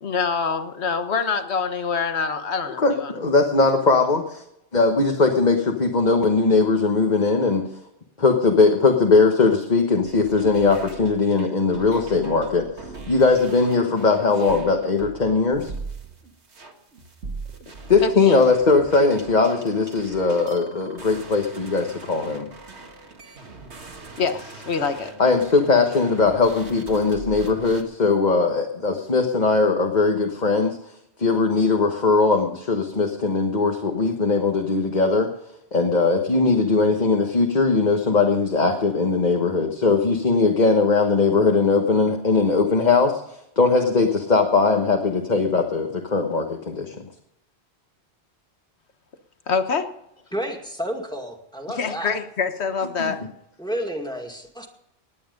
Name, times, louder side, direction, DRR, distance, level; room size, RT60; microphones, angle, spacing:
voice 1, 0.0-3.1 18.0-18.4 24.2-25.1 49.5-49.9 51.7-53.2, left 5 dB, 75° left, 8 dB, 1.5 m, -25 dB
voice 2, 2.8-4.4 4.7-7.7 8.2-12.7 13.1-15.7 17.9-22.5 25.2-30.8 31.2-35.3 35.7-43.2 43.6-46.9 53.0-53.1, left 4 dB, 40° left, 3 dB, 1.4 m, -20 dB
sound 1, 10.0-27.8, right 3 dB, 85° right, 2.1 m, -41 dB
voice 3, 50.3-52.2 53.6-54.7, equal, 5° left, 3 dB, 2.1 m, -31 dB
19.0 x 9.7 x 5.3 m, 0.81 s
omnidirectional pair, 1.1 m